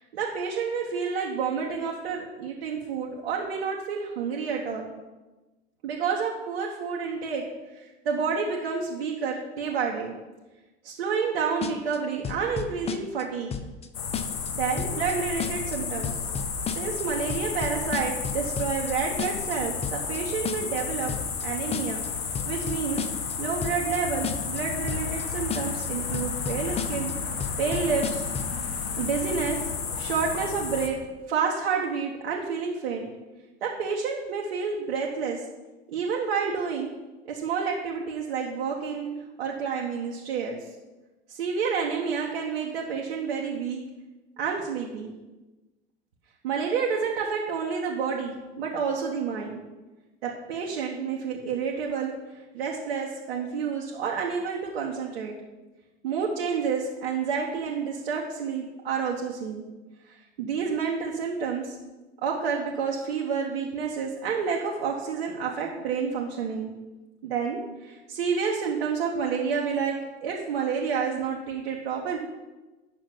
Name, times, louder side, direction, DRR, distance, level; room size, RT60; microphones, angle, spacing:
voice 1, 0.0-4.9 5.8-7.4 7.7-10.1 10.8-13.5 14.5-16.2 16.7-21.1 21.4-22.0 22.4-23.0 23.4-27.1 27.6-28.2 29.0-29.6 30.0-31.0 31.3-33.1 33.6-35.4 35.9-36.9 37.2-39.1 39.4-40.6 41.3-43.8 44.4-45.1 46.4-49.6 50.2-52.1 52.5-55.3 56.0-59.6 60.1-61.8 62.2-66.7 67.2-69.9 70.2-72.2, right 6 dB, 65° right, -2 dB, 1.1 m, -29 dB
sound 1, 11.6-12.0 12.2-13.2 13.5-13.9 14.1-14.5 14.8-15.1 15.4-15.8 16.0-17.0 17.3-18.9 19.2-19.5 19.8-20.2 20.5-20.8 21.1-21.4 21.7-22.1 22.4-23.3 23.6-24.0 24.2-24.6 24.9-25.2 25.5-25.9 26.1-27.1 27.4-28.6, left 7 dB, 20° left, 0.6 m, -32 dB
sound 2, 13.9-30.9, left 5 dB, 70° left, 1.1 m, -32 dB
8.4 x 6.2 x 5.4 m, 1.2 s
figure-of-eight pair, 75°, 32 cm